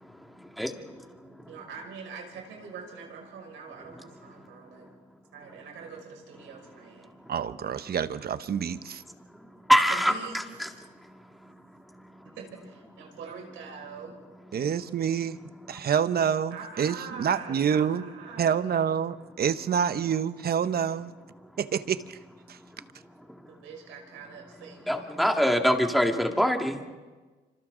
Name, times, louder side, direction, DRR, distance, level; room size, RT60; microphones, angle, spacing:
voice 1, 0.0-1.3 7.2-7.3 9.3-12.3 15.7-15.8 24.9-26.8, equal, ahead, 3 dB, 2.1 m, -27 dB
voice 2, 1.5-4.9 5.3-7.1 9.9-10.8 12.2-14.1 16.5-18.7 23.5-25.2, right 5 dB, 85° right, 1 dB, 5.8 m, -44 dB
voice 3, 7.3-9.0 14.5-15.4 15.7-18.0 18.4-21.1 21.6-22.2 22.5-22.6, right 8 dB, 50° right, 12 dB, 1.0 m, -27 dB
27.5 x 26.5 x 3.9 m, 1.3 s
cardioid pair, 90°, 20 cm